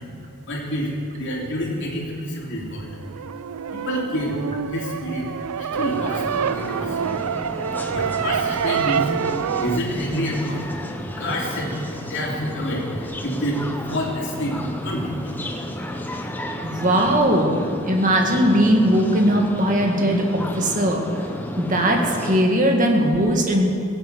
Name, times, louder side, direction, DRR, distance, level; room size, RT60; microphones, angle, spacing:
voice 1, 0.5-2.9 3.7-4.4 4.7-5.3 5.8-7.0 7.9-9.0 9.6-10.7 11.2-13.6 13.9-14.6 14.8-15.2, equal, 55° left, -2 dB, 3.1 m, -28 dB
sound 1, 2.7-9.8, right 7 dB, 85° right, 0.4 m, -26 dB
sound 2, 5.7-22.4, equal, 10° left, 0.8 m, -32 dB
voice 2, 16.6-21.2 21.6-23.7, equal, 35° right, 1 dB, 1.9 m, -19 dB
17.5 x 8.2 x 8.0 m, 2.3 s
head